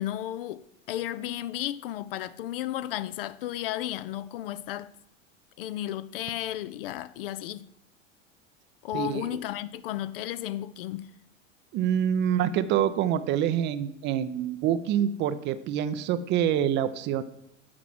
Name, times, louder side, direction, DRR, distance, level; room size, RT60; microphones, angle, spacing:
voice 1, 0.0-4.9 5.6-7.7 8.8-11.1, left 13 dB, 45° left, 0.4 m, -33 dB
voice 2, 8.9-9.4 11.7-17.2, right 10 dB, 30° right, 0.5 m, -26 dB
8.6 x 5.9 x 7.5 m
figure-of-eight pair, 80°, 39 cm